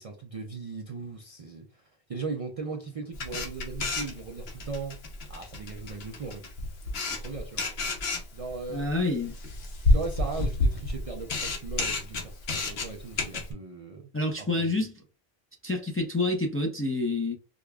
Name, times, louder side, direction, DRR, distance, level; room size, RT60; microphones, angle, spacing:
voice 1, 0.0-1.8 2.1-5.0 5.3-6.4 6.7-6.8 7.1-7.7 8.3-8.9 9.9-14.1 14.4-14.7, right 4 dB, 50° right, 0.4 m, -38 dB
Camera, 3.1-13.5, left 2 dB, 75° left, 1.1 m, -30 dB
voice 2, 8.7-9.3 14.1-14.9 15.6-17.4, left 2 dB, 15° left, 0.4 m, -28 dB
4.9 x 2.3 x 2.3 m
omnidirectional pair, 1.1 m